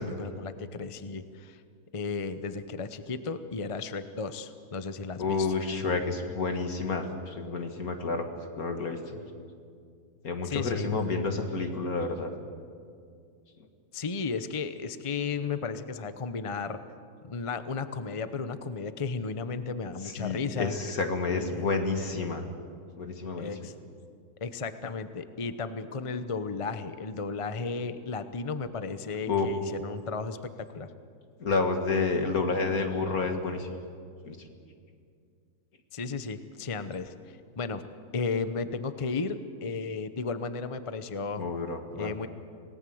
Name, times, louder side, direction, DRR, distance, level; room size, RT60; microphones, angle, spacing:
voice 1, 0.0-1.6 1.9-5.5 10.4-10.9 13.9-16.8 17.3-20.7 21.3-21.6 23.4-23.7 24.4-30.9 35.9-37.1 37.6-37.9 38.1-41.4 41.9-42.3, left 4 dB, 30° left, 11 dB, 0.7 m, -34 dB
voice 2, 5.2-8.3 8.6-9.0 10.2-12.3 20.0-22.5 23.0-23.5 29.2-29.5 31.4-33.7 34.3-34.4 41.4-42.2, left 4 dB, 65° left, 5 dB, 2.4 m, -29 dB
27.0 x 18.5 x 7.9 m, 2.3 s
omnidirectional pair, 1.7 m